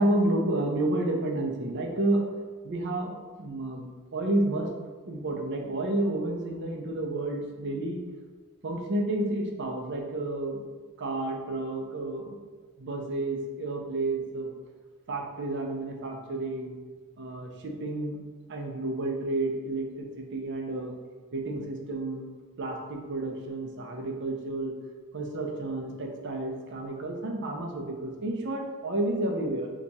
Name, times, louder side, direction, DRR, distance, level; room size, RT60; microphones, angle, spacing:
voice 1, 0.0-2.2 2.6-4.7 5.1-8.0 8.6-10.6 11.0-12.4 12.8-14.5 15.1-16.8 17.2-18.2 18.5-20.9 21.3-22.3 22.6-24.7 25.1-29.7, right 2 dB, 55° right, 1 dB, 0.5 m, -30 dB
2.9 x 2.3 x 4.0 m, 1.4 s
head